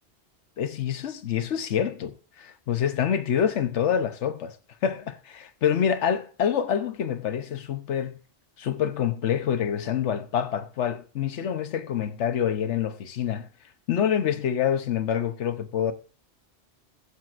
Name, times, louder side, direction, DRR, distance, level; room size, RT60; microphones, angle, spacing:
voice 1, 0.6-4.6 4.8-8.1 8.6-13.5 13.9-15.9, left 8 dB, 85° left, 1.1 m, -26 dB
21.5 x 7.5 x 2.5 m
omnidirectional pair, 1.2 m